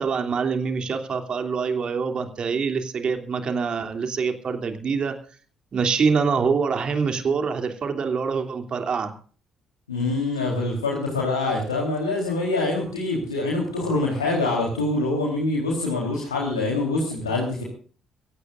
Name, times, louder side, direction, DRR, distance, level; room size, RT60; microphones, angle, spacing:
voice 1, 0.0-5.2 5.7-9.1, right 5 dB, 45° right, 6 dB, 3.0 m, -25 dB
voice 2, 9.9-17.6, left 2 dB, 85° left, -3 dB, 3.8 m, -25 dB
23.5 x 16.5 x 2.6 m, 0.41 s
figure-of-eight pair, 45°, 2 cm